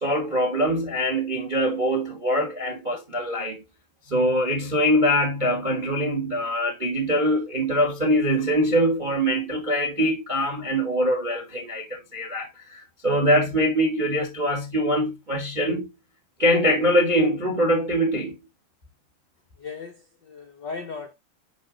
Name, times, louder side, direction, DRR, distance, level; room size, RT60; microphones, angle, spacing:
voice 1, 0.0-3.6 4.1-15.9 16.4-18.3, equal, 45° right, 0.6 m, -23 dB
voice 2, 19.6-21.1, left 4 dB, 85° left, 0.9 m, -37 dB
10.0 x 3.4 x 3.8 m
omnidirectional pair, 3.6 m